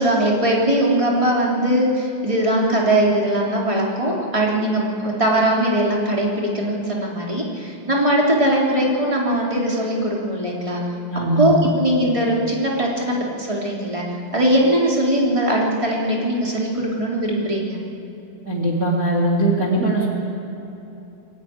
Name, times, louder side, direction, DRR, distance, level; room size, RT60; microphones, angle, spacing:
voice 1, 0.0-10.8 11.4-14.0 14.3-17.8, right 1 dB, 15° right, -3 dB, 1.2 m, -20 dB
voice 2, 11.1-11.7 18.4-20.1, right 1 dB, 55° right, -3 dB, 0.9 m, -20 dB
24.0 x 12.5 x 9.4 m, 3.0 s
omnidirectional pair, 5.7 m